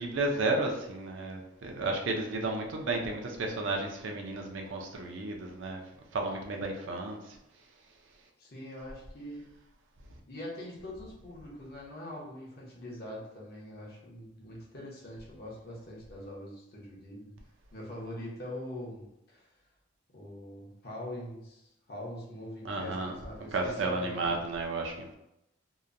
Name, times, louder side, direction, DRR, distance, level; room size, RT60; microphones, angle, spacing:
voice 1, 0.0-5.8 6.1-7.2 22.6-23.1 23.5-25.1, right 2 dB, 70° right, 1 dB, 0.5 m, -32 dB
voice 2, 8.4-9.4 10.3-17.3 17.7-19.5 20.1-24.4, left 1 dB, 55° left, -4 dB, 0.8 m, -43 dB
2.8 x 2.1 x 2.5 m, 0.85 s
head